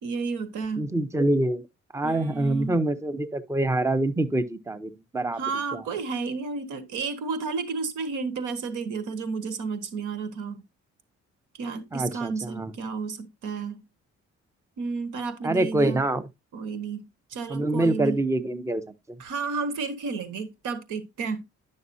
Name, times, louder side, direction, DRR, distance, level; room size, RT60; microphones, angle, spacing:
voice 1, 0.0-0.8 2.0-2.8 5.4-10.6 11.6-13.8 14.8-16.0 16.5-17.0 17.3-18.2 19.2-21.4, right 4 dB, 90° right, 1.6 m, -32 dB
voice 2, 0.8-1.6 1.9-5.4 5.7-5.8 11.9-12.7 15.4-16.2 17.5-18.8, right 2 dB, 10° right, 0.8 m, -25 dB
10.5 x 6.4 x 2.7 m
cardioid pair, 90°, 30 cm